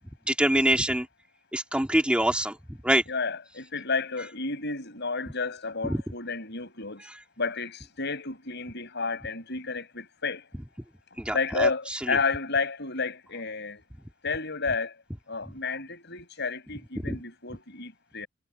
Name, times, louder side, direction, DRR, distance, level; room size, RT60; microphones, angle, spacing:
voice 1, 0.3-1.1 1.5-2.6 2.8-3.0 5.8-6.0 7.0-7.1 11.2-12.2 17.0-17.2, right 1 dB, 5° right, 2.8 m, -25 dB
voice 2, 3.1-7.1 7.4-10.4 11.3-13.8 14.2-14.9 15.3-18.3, left 4 dB, 55° left, 7.5 m, -31 dB
head